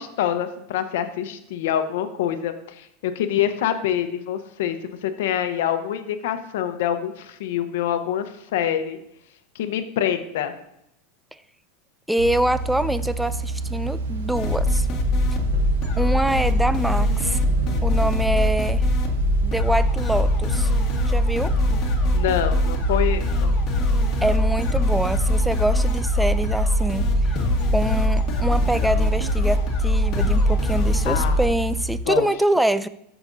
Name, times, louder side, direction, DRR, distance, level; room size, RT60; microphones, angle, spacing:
voice 1, 0.0-9.0 9.5-10.5 22.1-23.5 31.1-31.4 32.1-32.3, left 10 dB, 75° left, 9 dB, 0.9 m, -26 dB
voice 2, 12.1-14.9 16.0-17.4 17.8-18.9 19.4-20.7 21.1-21.5 24.2-27.4 27.7-32.9, right 1 dB, 5° right, 14 dB, 0.4 m, -25 dB
sound 1, 12.2-32.0, right 3 dB, 85° right, 0.9 m, -29 dB
sound 2, 14.3-31.5, left 1 dB, 40° left, 1.6 m, -22 dB
13.5 x 6.0 x 2.7 m, 0.78 s
supercardioid pair, 120°, 0 cm